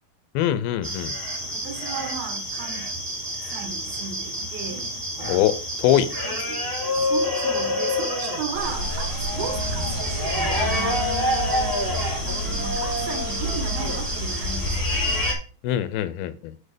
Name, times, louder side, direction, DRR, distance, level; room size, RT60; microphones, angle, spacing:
voice 1, 0.3-1.1 5.3-6.1 15.6-16.6, left 11 dB, 85° left, 12 dB, 2.6 m, -23 dB
sound 1, 0.8-15.3, left 1 dB, 5° right, 2.9 m, -28 dB
voice 2, 1.5-2.9 3.4-4.9 6.2-6.6 7.0-9.1 9.3-11.1 12.2-15.2, right 6 dB, 75° right, 5 dB, 3.4 m, -35 dB
sound 2, 8.5-15.3, equal, 30° right, 3.0 m, -30 dB
8.4 x 4.4 x 5.1 m, 0.37 s
omnidirectional pair, 4.4 m